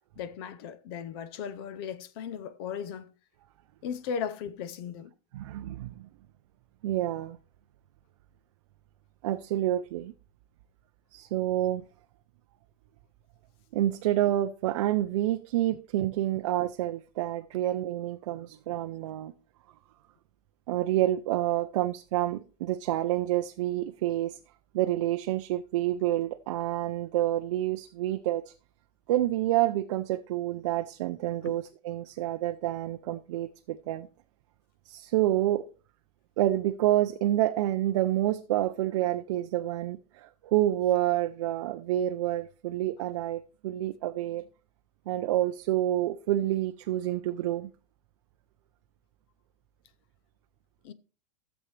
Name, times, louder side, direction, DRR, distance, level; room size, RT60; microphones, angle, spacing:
voice 1, 0.2-3.1 3.8-5.1 31.4-31.5 50.8-50.9, left 7 dB, 35° left, 0.6 m, -36 dB
voice 2, 5.3-6.1 6.8-7.4 9.2-10.1 11.1-11.8 13.7-19.3 20.7-24.4 24.7-28.5 29.1-34.1 34.9-35.6 36.4-44.4 45.1-47.7, right 14 dB, 50° right, 0.5 m, -28 dB
13.5 x 7.2 x 3.3 m
supercardioid pair, 180°, 20 cm